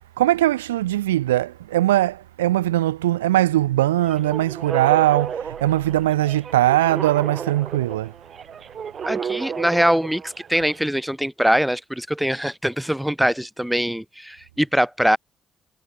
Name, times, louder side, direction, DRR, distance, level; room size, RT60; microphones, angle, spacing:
voice 1, 0.2-8.1, right 14 dB, 80° right, 0.4 m, -20 dB
sound 1, 4.0-10.8, right 7 dB, 50° right, 2.8 m, -32 dB
voice 2, 9.0-15.2, equal, 5° right, 1.4 m, -22 dB
figure-of-eight pair, 40°, 0 cm